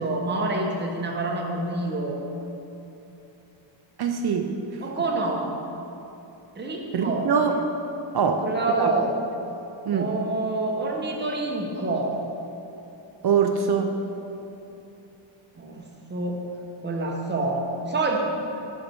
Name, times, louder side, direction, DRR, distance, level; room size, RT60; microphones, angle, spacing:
voice 1, 0.0-2.2 4.8-5.5 6.6-7.3 8.2-9.1 9.9-12.1 15.6-16.4 16.8-18.2, right 2 dB, 25° right, 0 dB, 0.8 m, -27 dB
voice 2, 4.0-4.5 6.9-7.5 8.1-8.5 8.8-8.9 9.9-10.1 13.2-14.0, right 6 dB, 55° right, 5 dB, 0.5 m, -23 dB
5.9 x 5.1 x 4.3 m, 3.0 s
wide cardioid pair, 95°, 47 cm